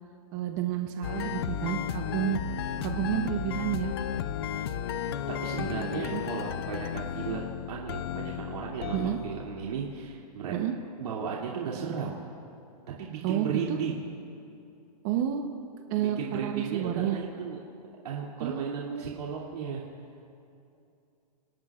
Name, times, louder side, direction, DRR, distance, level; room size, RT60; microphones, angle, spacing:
voice 1, 0.3-2.4 2.8-3.9 5.6-6.2 8.9-9.2 10.5-10.7 13.2-13.8 15.0-15.5 15.9-17.2 18.4-19.1, right 10 dB, 30° right, 5 dB, 0.8 m, -30 dB
sound 1, 1.0-10.2, left 9 dB, 40° left, 0.5 m, -34 dB
voice 2, 5.4-10.5 11.0-12.1 13.0-14.1 15.9-17.6 18.0-19.8, right 6 dB, 70° right, -4 dB, 2.6 m, -35 dB
29.0 x 18.0 x 2.4 m, 2.6 s
hypercardioid pair, 170°, 21 cm